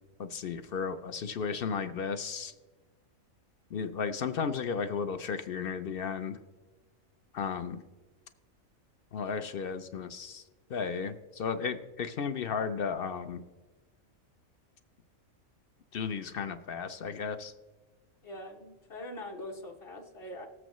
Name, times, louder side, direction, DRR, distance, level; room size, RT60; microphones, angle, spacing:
voice 1, 0.2-2.5 3.7-6.4 7.3-7.8 9.1-10.4 10.7-13.4 15.9-17.5, left 6 dB, 60° left, 10 dB, 0.6 m, -34 dB
voice 2, 18.2-20.5, left 1 dB, 45° left, 2 dB, 1.2 m, -43 dB
19.0 x 7.8 x 3.0 m, 1.2 s
omnidirectional pair, 1.4 m